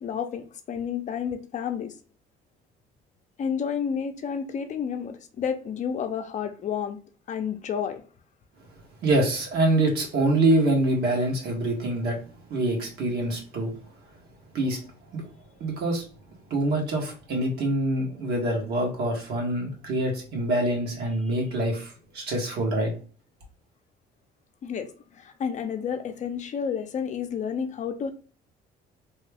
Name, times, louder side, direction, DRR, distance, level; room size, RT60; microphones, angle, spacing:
voice 1, 0.0-1.9 3.4-7.0 7.3-8.0 24.6-28.1, left 7 dB, 45° left, 0.6 m, -30 dB
voice 2, 9.0-12.2 12.5-13.7 14.5-14.8 15.1-15.2 15.6-16.0 16.5-22.9, right 1 dB, 70° right, 1.4 m, -25 dB
3.0 x 2.3 x 3.3 m
cardioid pair, 110°, 17 cm